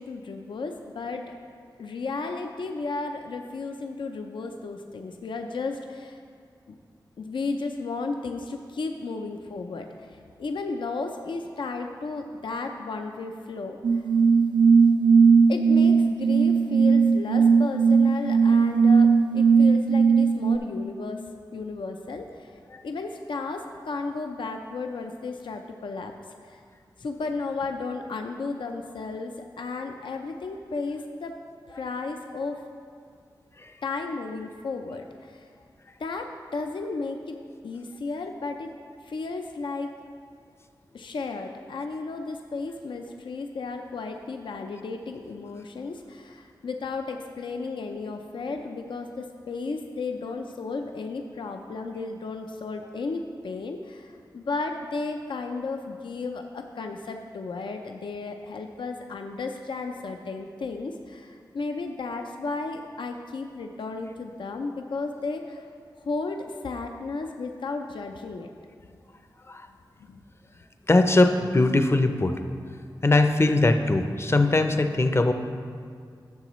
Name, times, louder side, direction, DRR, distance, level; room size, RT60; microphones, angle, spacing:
voice 1, 0.0-1.4 1.8-6.2 6.7-6.8 7.2-14.1 15.5-26.1 26.4-26.6 27.0-31.4 31.7-32.7 33.8-35.5 36.0-38.7 39.0-40.0 40.9-65.7 66.0-68.5 70.0-70.2, left 3 dB, 75° left, 4 dB, 0.5 m, -34 dB
sound 1, 13.8-20.6, right 5 dB, 70° right, 0.4 m, -18 dB
voice 2, 70.9-72.4 73.0-75.3, left 2 dB, 30° left, 7 dB, 0.6 m, -21 dB
12.0 x 6.7 x 3.1 m, 2.1 s
cardioid pair, 60°, 8 cm